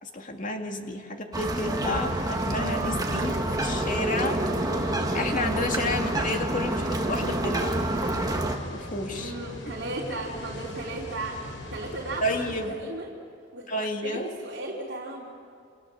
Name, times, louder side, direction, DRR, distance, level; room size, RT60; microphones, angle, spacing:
voice 1, 0.0-4.4 5.1-7.8 8.7-9.3 12.2-12.8 13.7-14.3, left 1 dB, 45° left, 3 dB, 2.3 m, -31 dB
sound 1, 1.3-8.6, right 1 dB, 20° right, 1.7 m, -28 dB
sound 2, 1.9-12.7, left 1 dB, 80° left, 5.1 m, -40 dB
voice 2, 9.1-11.4 11.7-13.1 13.5-13.6 14.0-15.3, right 2 dB, 60° right, -5 dB, 3.6 m, -35 dB
28.5 x 27.5 x 7.2 m, 2.4 s
head